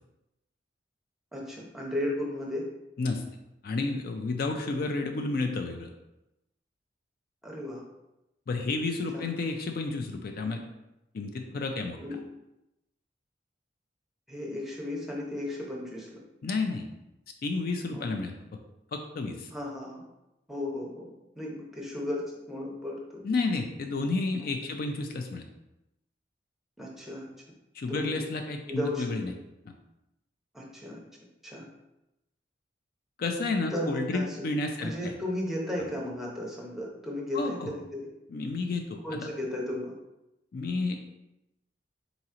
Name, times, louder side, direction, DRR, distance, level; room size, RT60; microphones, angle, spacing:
voice 1, 1.3-2.7 7.4-7.8 9.1-9.2 12.0-12.2 14.3-16.2 17.9-18.1 19.5-20.0 20.5-21.1 21.3-23.2 24.4-24.8 26.8-27.3 27.9-28.2 28.7-29.2 30.5-31.0 31.4-31.6 33.7-34.4 34.8-38.1 39.0-39.9, left 1 dB, ahead, -3 dB, 0.8 m, -35 dB
voice 2, 3.6-5.9 8.5-10.6 11.1-12.0 16.4-16.9 17.4-18.3 18.9-19.5 23.2-25.4 27.7-29.3 33.2-35.2 35.8-35.9 37.3-37.7 38.3-39.3 40.5-41.0, left 3 dB, 55° left, 5 dB, 0.4 m, -31 dB
4.0 x 3.0 x 3.7 m, 0.91 s
head